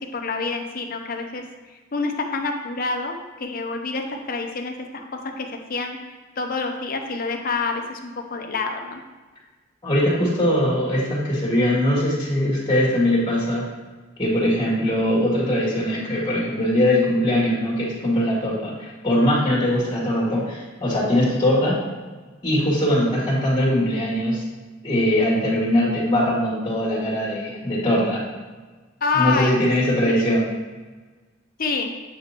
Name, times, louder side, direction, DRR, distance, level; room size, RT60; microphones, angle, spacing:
voice 1, 0.1-1.4 1.7-5.0 5.4-6.0 6.4-9.0 29.0-29.6 30.1-30.2 31.6-31.9, left 4 dB, 45° left, 3 dB, 0.7 m, -27 dB
voice 2, 9.8-13.7 14.2-21.8 22.4-24.4 24.8-28.2 29.1-30.5, left 1 dB, 25° left, -6 dB, 2.0 m, -21 dB
8.5 x 5.0 x 3.0 m, 1.3 s
head